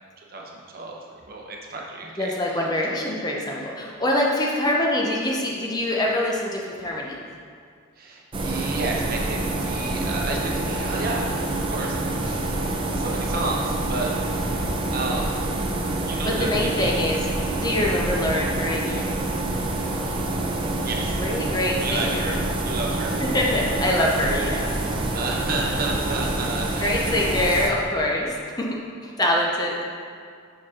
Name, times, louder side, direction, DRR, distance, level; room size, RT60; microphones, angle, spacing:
voice 1, 0.2-2.4 2.7-2.9 4.3-4.5 8.0-12.0 12.2-12.4 12.9-14.1 14.9-15.5 16.0-17.0 20.7-21.3 21.8-23.1 25.1-27.2, right 3 dB, 45° right, -1 dB, 0.8 m, -31 dB
voice 2, 2.2-7.2 16.2-17.2 17.6-19.1 21.2-22.3 23.2-24.7 26.8-29.8, left 1 dB, 20° left, -2 dB, 0.6 m, -24 dB
sound 1, 8.3-27.7, right 2 dB, 25° right, 0.5 m, -27 dB
5.9 x 4.9 x 4.9 m, 2.2 s
head